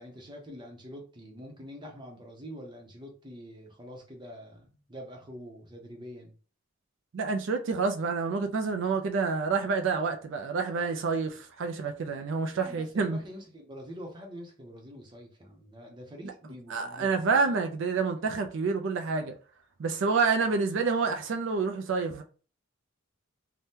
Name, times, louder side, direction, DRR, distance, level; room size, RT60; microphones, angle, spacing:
voice 1, 0.0-6.4 12.5-17.5, equal, 20° right, 0.7 m, -45 dB
voice 2, 7.1-13.2 16.7-19.4 19.8-22.2, right 4 dB, 60° right, 0.4 m, -28 dB
2.7 x 2.1 x 3.5 m
head